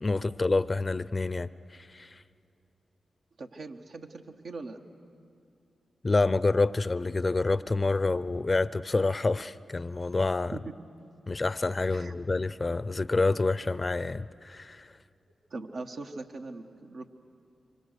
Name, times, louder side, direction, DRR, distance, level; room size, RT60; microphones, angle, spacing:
voice 1, 0.0-2.2 6.0-10.6 11.3-14.9, left 3 dB, 40° left, 0.5 m, -28 dB
voice 2, 3.4-4.8 10.5-10.6 11.9-12.1 15.5-17.1, right 3 dB, 70° right, 1.3 m, -41 dB
25.5 x 25.5 x 6.7 m
supercardioid pair, 40°, 0 cm